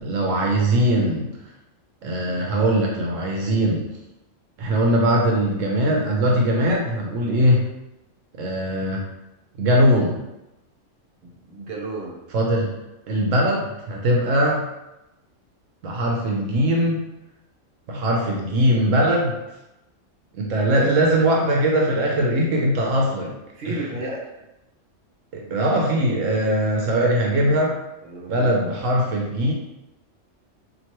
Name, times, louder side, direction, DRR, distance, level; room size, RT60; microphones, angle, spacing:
voice 1, 0.0-1.4 2.0-3.9 4.6-7.6 8.4-9.0 9.6-10.2 12.3-12.7 13.1-14.6 15.8-17.0 17.9-19.3 20.3-23.3 23.7-23.9 25.3-27.7 28.3-29.5, right 1 dB, 80° right, -1 dB, 1.1 m, -21 dB
voice 2, 11.2-12.2 23.5-24.3 28.0-28.5, right 2 dB, 55° right, -2 dB, 1.0 m, -33 dB
4.4 x 2.9 x 3.0 m, 0.94 s
omnidirectional pair, 1.3 m